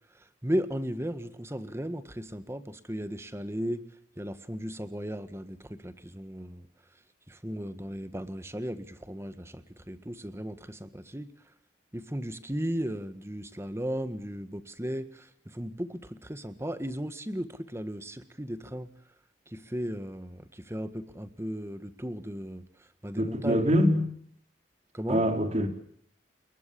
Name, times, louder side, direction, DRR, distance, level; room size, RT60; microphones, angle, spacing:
voice 1, 0.1-3.8 4.2-6.6 7.3-11.3 11.9-18.9 19.5-22.6 23.0-23.7 24.9-25.2, equal, 15° right, 11 dB, 1.7 m, -36 dB
voice 2, 23.2-24.1 25.1-25.7, equal, 40° right, 5 dB, 4.2 m, -24 dB
29.0 x 22.0 x 7.0 m, 0.63 s
head